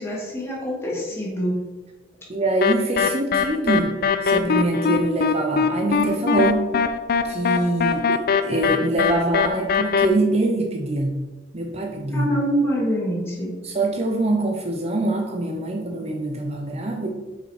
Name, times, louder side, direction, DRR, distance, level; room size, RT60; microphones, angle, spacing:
voice 1, 0.0-1.6 12.1-13.5, equal, 15° left, -5 dB, 1.9 m, -25 dB
voice 2, 2.3-3.9 4.2-6.7 7.2-11.2 11.5-12.3 13.6-17.1, right 2 dB, 35° right, 2 dB, 0.7 m, -24 dB
sound 1, 2.6-10.1, left 6 dB, 50° left, 0.4 m, -21 dB
5.5 x 5.0 x 4.3 m, 1.2 s
head